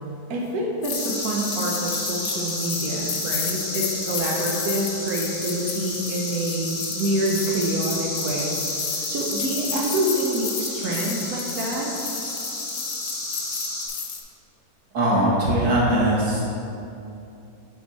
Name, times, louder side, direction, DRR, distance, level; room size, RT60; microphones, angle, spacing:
voice 1, 0.3-8.6 8.9-11.9, right 1 dB, 70° right, -2 dB, 1.2 m, -27 dB
sound 1, 0.8-14.2, left 7 dB, 60° left, 1.0 m, -33 dB
sound 2, 0.9-13.9, left 2 dB, 30° left, 0.9 m, -32 dB
voice 2, 14.9-16.4, right 1 dB, 85° right, -6 dB, 2.2 m, -20 dB
8.8 x 4.4 x 4.1 m, 2.8 s
omnidirectional pair, 1.8 m